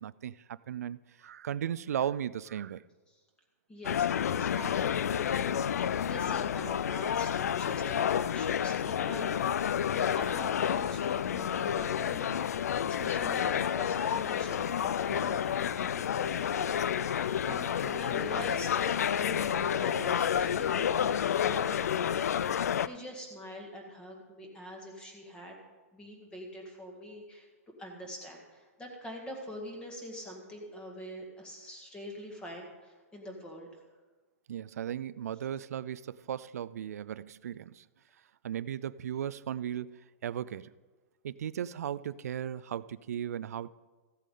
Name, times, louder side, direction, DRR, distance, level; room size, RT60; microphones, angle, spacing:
voice 1, 0.0-2.8 15.1-15.4 34.5-37.9 38.4-40.7 41.2-43.7, right 9 dB, 85° right, 18 dB, 0.4 m, -36 dB
voice 2, 3.7-25.6 25.9-27.5 27.8-33.7, equal, 10° left, 0 dB, 1.9 m, -45 dB
sound 1, 3.8-22.9, left 9 dB, 90° left, 0.4 m, -30 dB
14.5 x 8.3 x 3.8 m, 1.3 s
hypercardioid pair, 150°, 8 cm